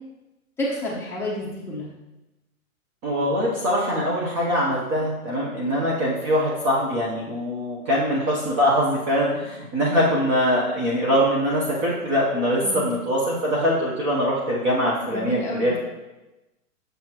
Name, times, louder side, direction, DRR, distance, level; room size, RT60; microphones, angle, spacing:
voice 1, 0.6-1.9 12.6-12.9 15.1-15.8, left 1 dB, 5° left, -7 dB, 1.1 m, -29 dB
voice 2, 3.0-15.9, equal, 25° right, -4 dB, 0.8 m, -23 dB
6.8 x 5.7 x 2.9 m, 1.0 s
hypercardioid pair, 145°, 44 cm